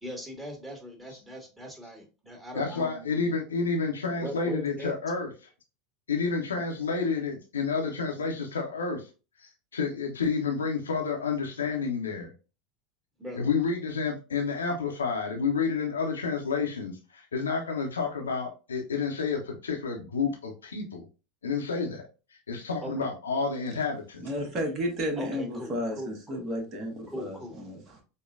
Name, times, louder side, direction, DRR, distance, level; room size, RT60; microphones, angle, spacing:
voice 1, 0.0-3.3 4.1-4.9 13.2-13.5 22.8-23.1 25.2-26.4 27.1-27.6, equal, 10° right, 1.5 m, -40 dB
voice 2, 2.5-5.5 6.1-9.1 9.4-12.3 13.3-21.1 21.4-24.3, left 5 dB, 80° left, 0.6 m, -30 dB
voice 3, 24.2-28.0, equal, 40° right, 1.2 m, -33 dB
5.2 x 2.2 x 2.4 m
figure-of-eight pair, 80°, 0 cm